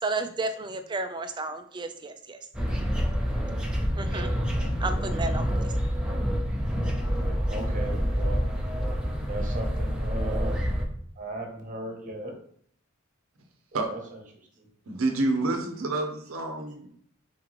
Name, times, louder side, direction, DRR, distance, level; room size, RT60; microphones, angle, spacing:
voice 1, 0.0-2.4 4.0-4.3 4.8-5.7, right 3 dB, 20° right, 8 dB, 0.4 m, -32 dB
sound 1, 2.5-10.9, equal, 5° right, 0.7 m, -27 dB
voice 2, 7.5-8.5 9.3-10.7 11.2-12.3 13.9-14.0, right 1 dB, 40° right, 2 dB, 1.0 m, -36 dB
voice 3, 14.9-16.9, right 2 dB, 75° right, 4 dB, 0.7 m, -28 dB
4.4 x 3.8 x 3.1 m, 0.62 s
head